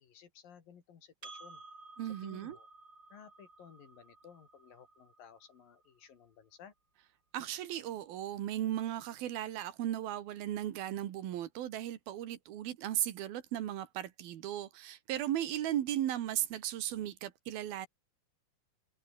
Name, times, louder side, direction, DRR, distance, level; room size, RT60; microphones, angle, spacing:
voice 1, 0.0-1.6 2.2-2.7 3.1-6.7, left 8 dB, 70° left, 4.4 m, -56 dB
Percussion, 1.2-6.0, right 3 dB, 30° right, 6.2 m, -55 dB
voice 2, 2.0-2.6 7.3-17.9, right 12 dB, 85° right, 3.5 m, -36 dB
omnidirectional pair, 4.2 m